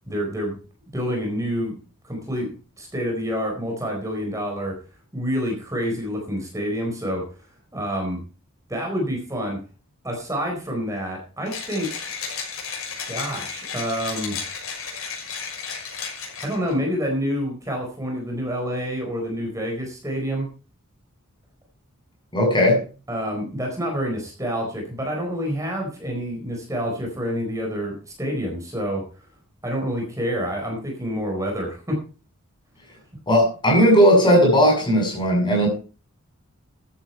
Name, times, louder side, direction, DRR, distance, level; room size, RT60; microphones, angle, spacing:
voice 1, 0.0-0.6 0.9-1.8 2.0-4.8 5.1-7.3 7.7-8.2 8.7-9.6 10.0-12.0 13.1-14.4 16.4-20.5 23.1-29.0 29.6-32.0, equal, 15° right, 1 dB, 4.4 m, -28 dB
Mechanisms, 11.5-16.7, left 6 dB, 75° left, 6.5 m, -33 dB
voice 2, 22.3-22.8 33.3-35.7, equal, 20° left, 0 dB, 7.2 m, -17 dB
14.0 x 10.5 x 4.5 m, 0.35 s
head